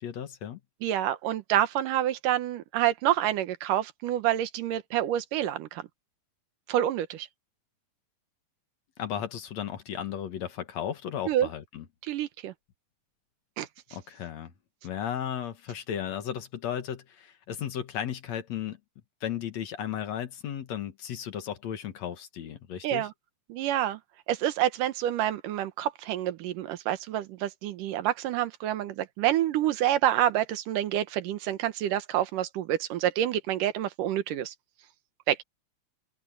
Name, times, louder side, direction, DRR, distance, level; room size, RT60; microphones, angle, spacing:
voice 1, 0.0-0.6 9.0-11.9 13.9-14.5 14.8-18.8 19.2-23.1, left 9 dB, 60° left, 2.5 m, -35 dB
voice 2, 0.8-5.8 6.7-7.3 11.3-11.5 12.1-12.5 13.6-13.7 22.8-23.1 23.5-24.0 24.3-34.5 35.3-35.4, right 12 dB, 85° right, 2.7 m, -27 dB
omnidirectional pair, 3.6 m